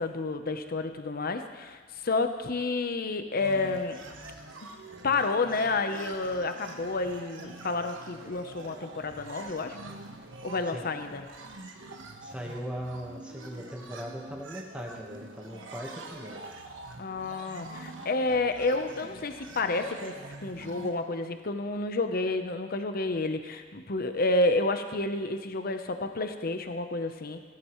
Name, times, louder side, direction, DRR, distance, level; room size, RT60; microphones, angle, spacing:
voice 1, 0.0-4.0 4.6-4.7 5.0-9.8 10.4-11.2 17.0-20.2 20.4-27.4, left 3 dB, 50° left, 7 dB, 0.8 m, -30 dB
sound 1, 3.4-20.9, right 2 dB, 80° right, 1.2 m, -45 dB
voice 2, 12.2-16.5, equal, 5° right, 0 dB, 1.3 m, -39 dB
15.0 x 14.5 x 3.1 m, 1.5 s
head